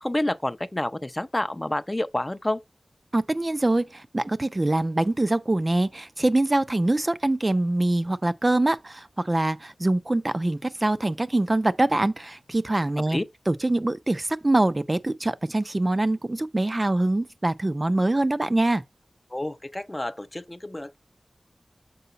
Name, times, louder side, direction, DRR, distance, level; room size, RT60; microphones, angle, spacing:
voice 1, 0.0-2.6 13.1-13.2 19.3-21.0, left 1 dB, 20° left, 0.5 m, -29 dB
voice 2, 3.1-13.2 13.5-18.8, right 2 dB, 30° right, 0.4 m, -24 dB
6.9 x 4.7 x 3.9 m
wide cardioid pair, 75°, 0 cm